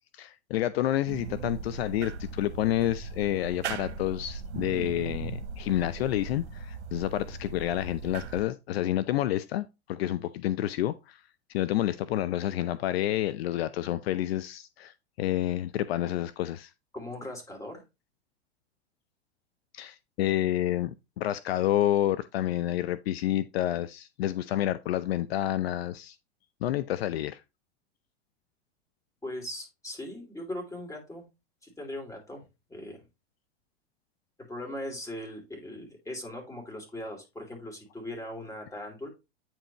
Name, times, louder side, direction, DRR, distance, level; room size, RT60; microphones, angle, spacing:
voice 1, 0.1-11.2 11.5-16.7 19.7-26.2 26.6-27.4, left 13 dB, 65° left, 0.5 m, -29 dB
sound 1, 1.1-8.4, right 5 dB, 75° right, 0.9 m, -38 dB
voice 2, 16.9-17.8 29.2-31.2 31.6-32.4 32.7-33.1 34.5-39.1, left 1 dB, 10° left, 2.8 m, -39 dB
9.0 x 4.5 x 3.0 m
hypercardioid pair, 95°, 33 cm